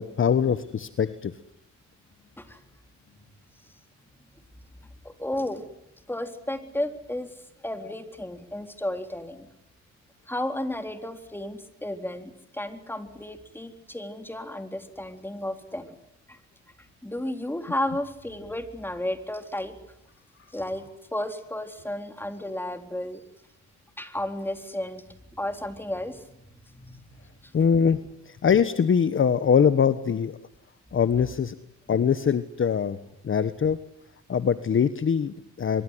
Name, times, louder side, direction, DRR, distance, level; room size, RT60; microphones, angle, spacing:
voice 1, 0.0-1.3 27.5-28.0 28.3-30.4 30.9-31.5 31.9-33.0 33.2-33.8 34.3-35.8, left 7 dB, 40° left, 13 dB, 1.3 m, -23 dB
voice 2, 5.0-5.7 6.1-7.3 7.6-9.5 10.3-16.0 16.3-16.4 16.8-19.7 20.5-20.8 21.1-23.2 24.0-25.0 25.3-27.1 27.4-27.5, left 1 dB, 5° left, 7 dB, 3.8 m, -33 dB
24.0 x 23.5 x 9.6 m, 0.83 s
cardioid pair, 90°, 30 cm